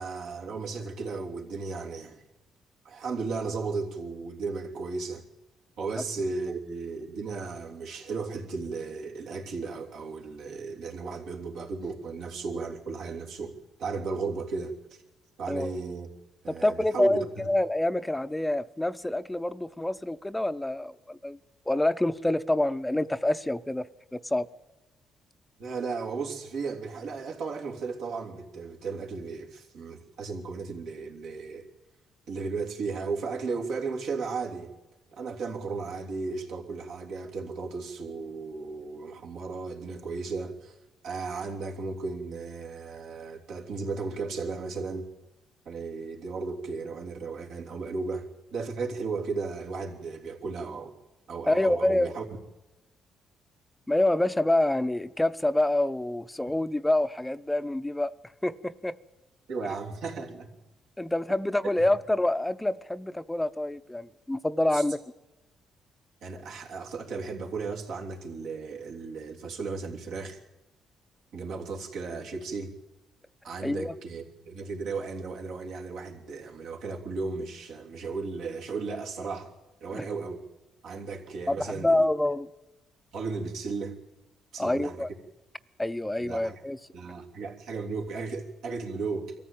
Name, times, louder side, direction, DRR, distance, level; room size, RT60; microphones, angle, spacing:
voice 1, 0.0-2.2 2.8-5.2 5.8-15.0 15.4-16.1 16.4-17.5 25.6-31.7 32.3-34.7 35.1-40.8 41.0-45.1 45.6-50.9 51.3-52.2 59.5-60.5 61.6-61.7 64.7-64.9 66.2-70.4 71.3-72.7 73.4-79.5 79.8-80.4 80.8-82.1 83.1-84.0 84.5-85.1 86.2-86.6 86.9-89.3, right 4 dB, 80° right, 3.2 m, -35 dB
voice 2, 16.5-21.4 21.7-23.9 24.1-24.5 51.5-52.1 53.9-58.1 58.4-59.0 61.0-65.0 73.6-73.9 79.9-80.0 81.5-82.5 84.6-85.1 85.8-86.8, left 1 dB, 10° left, 0.6 m, -27 dB
22.5 x 14.5 x 9.1 m
cardioid pair, 90°, 0 cm